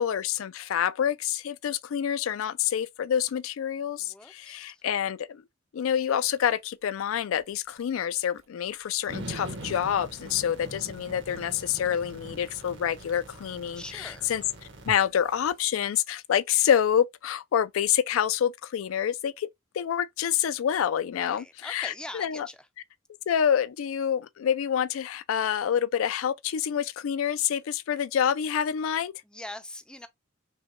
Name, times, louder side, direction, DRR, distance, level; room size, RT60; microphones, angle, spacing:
voice 1, 0.0-5.4 5.7-14.4 14.9-19.5 19.7-22.5 23.3-29.1, left 9 dB, 85° left, 0.3 m, -27 dB
voice 2, 4.0-4.8 10.1-10.4 13.7-14.3 21.2-22.6 29.2-30.1, left 1 dB, 5° left, 0.4 m, -43 dB
Chewing mastication, 6.2-16.4, right 4 dB, 85° right, 0.6 m, -54 dB
sound 1, 9.1-14.9, right 1 dB, 65° right, 1.1 m, -42 dB
5.4 x 2.2 x 2.9 m
head